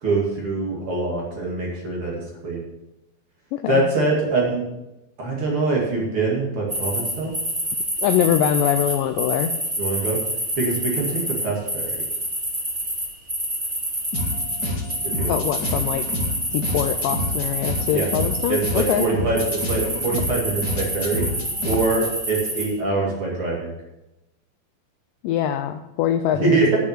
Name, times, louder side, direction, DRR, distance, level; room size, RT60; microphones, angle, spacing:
voice 1, 0.0-2.6 3.7-4.6 5.2-7.3 9.8-10.2 10.6-12.0 15.2-15.3 17.9-18.1 18.5-21.3 21.6-23.7 26.4-26.8, right 3 dB, 40° right, -3 dB, 2.6 m, -24 dB
voice 2, 3.5-3.8 8.0-9.5 15.3-16.0 16.5-19.0 25.2-26.8, left 10 dB, 85° left, 8 dB, 2.0 m, -23 dB
sound 1, 6.7-19.0 19.3-22.6, right 1 dB, 15° right, 2.7 m, -27 dB
sound 2, 14.1-22.1, left 2 dB, 50° left, 1.2 m, -29 dB
9.5 x 6.2 x 7.3 m, 0.93 s
omnidirectional pair, 4.4 m